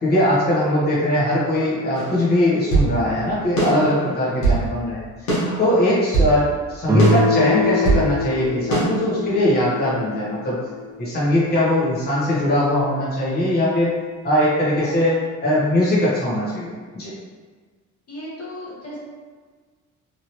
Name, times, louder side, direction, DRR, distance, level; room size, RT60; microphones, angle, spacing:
voice 1, 0.0-5.1 5.6-10.6 11.0-13.9 14.2-17.1, left 1 dB, 35° left, -8 dB, 1.0 m, -20 dB
sound 1, 1.9-2.9 3.6-4.6 5.3-6.4 7.0-8.1 8.7-8.8, right 3 dB, 90° left, 1.2 m, -22 dB
voice 2, 3.7-4.1 5.4-5.8 14.8-15.1 18.1-19.0, left 1 dB, 55° left, -7 dB, 1.1 m, -36 dB
Guitar, 6.9-11.7, left 2 dB, 10° right, 0.6 m, -24 dB
3.1 x 2.6 x 2.9 m, 1.5 s
cardioid pair, 90°, 30 cm